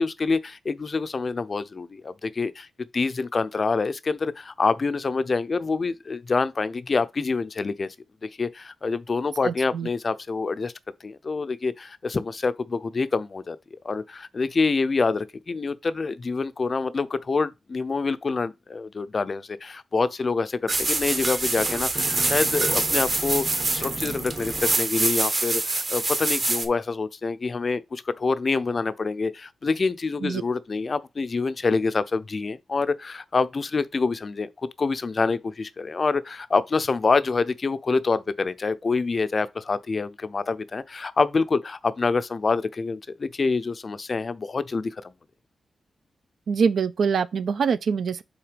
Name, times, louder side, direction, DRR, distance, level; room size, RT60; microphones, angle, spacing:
voice 1, 0.0-2.7 2.9-7.9 8.2-10.7 11.0-13.6 13.8-34.5 34.8-45.1, left 4 dB, 35° left, 0.5 m, -26 dB
voice 2, 9.4-9.9 30.2-30.4 46.5-48.2, right 6 dB, 70° right, 0.5 m, -24 dB
sound 1, 20.7-26.7, right 2 dB, 30° right, 1.0 m, -25 dB
5.8 x 4.0 x 5.0 m
wide cardioid pair, 145°, 0 cm